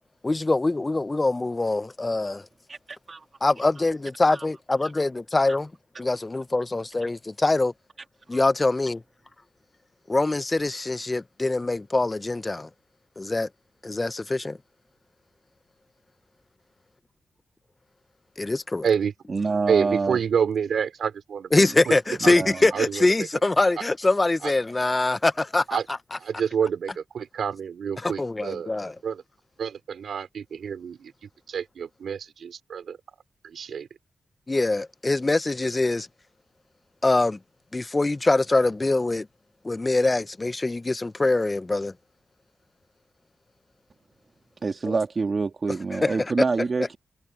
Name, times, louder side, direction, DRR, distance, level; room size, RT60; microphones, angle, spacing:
voice 1, 0.2-2.4 3.4-5.7 6.0-7.7 8.3-9.0 10.1-12.7 13.2-13.5 13.8-14.6 18.4-18.9 21.5-25.8 26.1-26.2 28.0-28.9 34.5-36.1 37.0-37.4 37.7-39.3 39.6-41.9 44.9-45.0 45.9-46.3, left 2 dB, 30° left, 0.7 m, -24 dB
voice 2, 2.7-3.2 4.4-4.5 19.3-20.2 22.2-22.6 44.6-47.0, right 4 dB, 50° right, 2.1 m, -27 dB
voice 3, 19.7-21.5 21.9-22.0 22.2-22.3 22.7-23.1 24.4-24.5 25.7-25.8 26.2-28.7 29.0-29.2 29.6-31.1 31.5-33.0 33.4-33.9, right 7 dB, 75° right, 3.1 m, -28 dB
cardioid pair, 50°, 0 cm